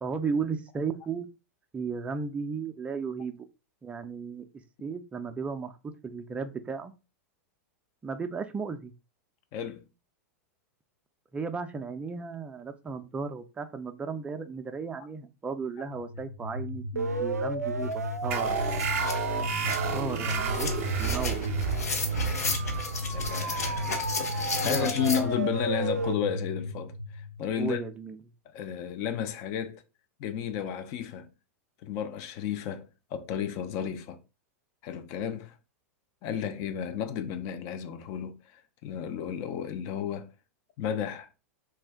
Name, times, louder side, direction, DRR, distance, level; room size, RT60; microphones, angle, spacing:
voice 1, 0.0-1.3 1.7-3.5 3.8-4.5 4.8-6.9 8.0-8.9 11.3-18.6 19.9-20.7 21.0-21.4 24.6-25.0 27.6-28.2, right 5 dB, 15° right, 0.4 m, -35 dB
voice 2, 9.5-9.8 23.0-23.9 24.6-27.8 28.5-29.8 30.2-31.3 31.8-34.2 34.8-35.5 36.2-40.3 40.8-41.3, left 8 dB, 45° left, 0.5 m, -32 dB
sound 1, 15.9-27.8, equal, 90° right, 0.4 m, -33 dB
sound 2, 17.9-18.0 18.3-25.2, left 4 dB, 75° left, 0.7 m, -35 dB
sound 3, 18.3-25.4, right 7 dB, 55° right, 0.7 m, -32 dB
2.4 x 2.2 x 3.4 m
figure-of-eight pair, 95°, 8 cm